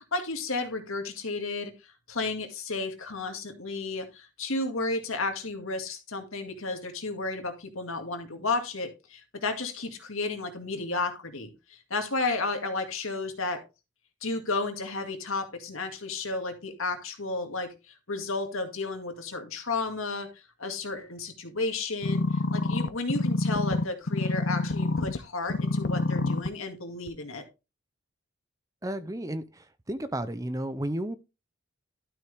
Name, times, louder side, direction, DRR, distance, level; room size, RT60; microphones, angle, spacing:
voice 1, 0.1-13.6 14.2-20.3 20.6-22.2 22.5-27.4, left 3 dB, 75° left, 2.1 m, -32 dB
sound 1, 22.0-25.2 25.5-26.5 27.1-27.2, left 2 dB, 50° left, 0.6 m, -27 dB
voice 2, 28.8-29.4 29.9-31.2, right 1 dB, 15° right, 0.6 m, -32 dB
12.0 x 5.9 x 3.5 m
head